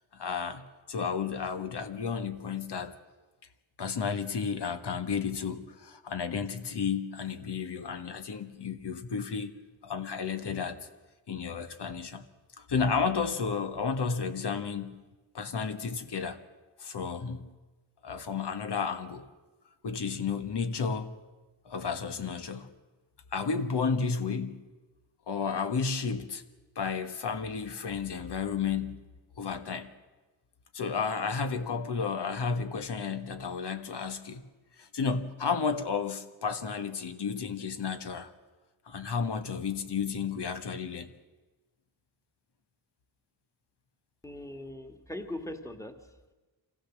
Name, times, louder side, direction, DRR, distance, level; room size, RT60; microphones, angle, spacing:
voice 1, 0.1-3.0 3.8-9.5 9.8-10.9 11.3-12.2 12.6-15.0 15.3-16.4 16.8-17.5 18.0-19.3 19.8-21.1 21.6-22.7 23.3-24.6 25.3-26.4 26.7-29.0 29.4-29.9 30.7-34.4 34.8-38.3 38.9-41.1, left 5 dB, 65° left, 1.5 m, -32 dB
voice 2, 44.2-46.1, left 1 dB, 5° left, 1.7 m, -40 dB
24.5 x 15.5 x 7.4 m
cardioid pair, 85°, 44 cm